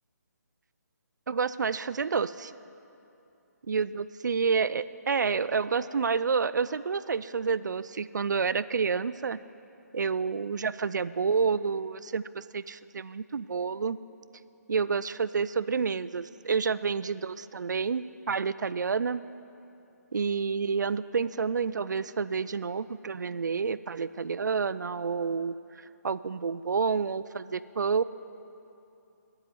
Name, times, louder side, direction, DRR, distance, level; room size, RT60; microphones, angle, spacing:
voice 1, 1.3-2.5 3.7-9.4 9.9-14.0 14.7-19.2 20.1-25.6 26.0-28.0, right 5 dB, 90° right, 16 dB, 0.4 m, -29 dB
9.6 x 7.9 x 9.1 m, 2.8 s
hypercardioid pair, 165°, 9 cm